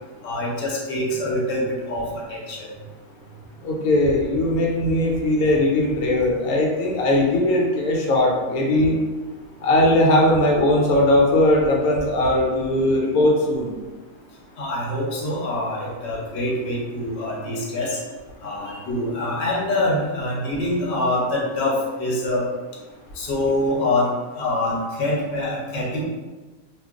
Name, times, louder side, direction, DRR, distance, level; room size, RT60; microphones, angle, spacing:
voice 1, 0.2-2.7 14.6-18.0 18.4-22.4 23.2-26.0, left 1 dB, 55° left, -4 dB, 0.9 m, -25 dB
voice 2, 3.6-9.0 9.6-13.8, left 1 dB, 90° left, -1 dB, 1.1 m, -19 dB
2.5 x 2.3 x 3.6 m, 1.3 s
omnidirectional pair, 1.5 m